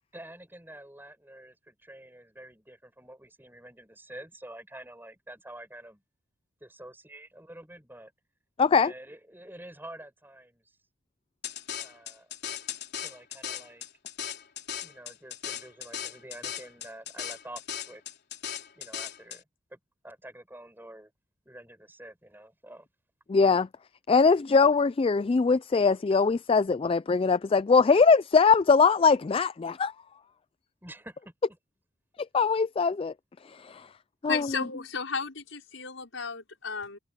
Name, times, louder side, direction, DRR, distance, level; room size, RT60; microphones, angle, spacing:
voice 1, 0.1-6.0 6.6-8.1 8.7-10.6 11.8-12.3 13.0-13.9 14.8-18.0 18.8-19.4 19.7-21.1 21.5-22.9 30.8-31.3, right 1 dB, 10° right, 6.8 m, -47 dB
voice 2, 8.6-8.9 23.3-23.7 24.1-29.9 32.3-33.1 33.5-33.9 34.2-34.5, left 4 dB, 30° left, 0.3 m, -22 dB
sound 1, 11.4-19.4, left 9 dB, 55° left, 4.0 m, -37 dB
voice 3, 34.3-37.0, left 5 dB, 80° left, 5.2 m, -34 dB
head